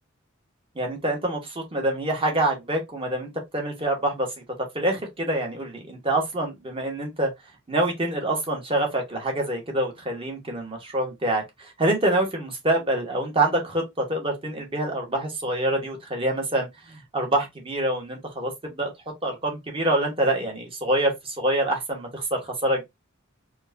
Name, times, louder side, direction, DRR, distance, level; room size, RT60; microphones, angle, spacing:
voice 1, 0.7-4.3 4.7-7.3 7.7-22.8, right 1 dB, 25° right, 1.0 m, -26 dB
4.4 x 2.2 x 2.5 m
head